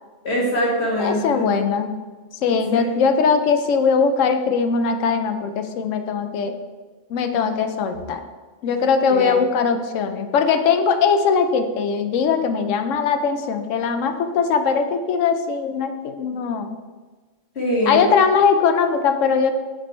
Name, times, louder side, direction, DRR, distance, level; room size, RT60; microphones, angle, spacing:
voice 1, 0.2-1.5 2.5-2.9 9.1-9.3 17.6-18.0, equal, 60° left, -4 dB, 1.8 m, -23 dB
voice 2, 1.0-1.9 2.4-6.5 7.1-8.2 8.6-16.8 17.9-19.5, left 5 dB, 85° left, 8 dB, 1.0 m, -20 dB
5.4 x 5.1 x 4.3 m, 1.3 s
omnidirectional pair, 1.3 m